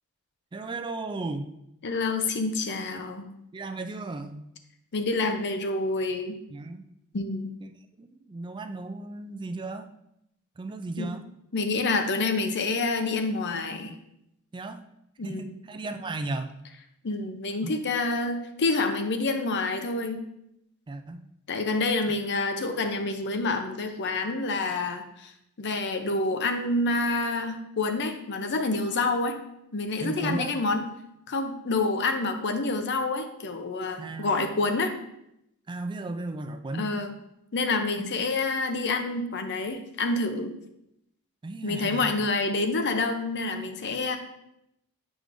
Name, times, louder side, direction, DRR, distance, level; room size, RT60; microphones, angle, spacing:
voice 1, 0.5-1.5 3.5-4.4 6.5-6.8 8.0-9.9 10.6-11.2 14.5-14.8 15.2-16.5 17.6-17.8 20.9-21.2 30.0-30.5 34.0-34.6 35.7-36.9 38.0-38.1 41.4-42.1, right 2 dB, 20° right, 8 dB, 0.3 m, -35 dB
voice 2, 1.8-3.3 4.9-6.4 7.1-7.5 11.0-11.1 11.5-13.9 15.2-15.5 17.0-20.2 21.5-25.3 25.6-29.4 29.7-30.8 31.3-34.9 36.8-37.1 37.5-40.5 41.6-44.2, left 3 dB, 55° left, 7 dB, 0.6 m, -28 dB
7.7 x 4.9 x 2.5 m, 0.80 s
head